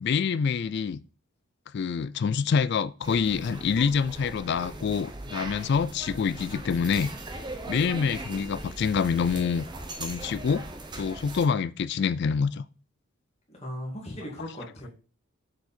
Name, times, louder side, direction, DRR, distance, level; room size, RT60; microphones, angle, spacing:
voice 1, 0.0-1.0 1.7-7.1 7.7-9.7 10.0-10.7 11.0-12.7, left 6 dB, 50° left, 0.3 m, -26 dB
sound 1, 3.0-11.4, right 2 dB, 20° right, 0.8 m, -39 dB
voice 2, 13.5-14.9, equal, 30° left, 2.1 m, -37 dB
6.5 x 4.7 x 4.3 m
head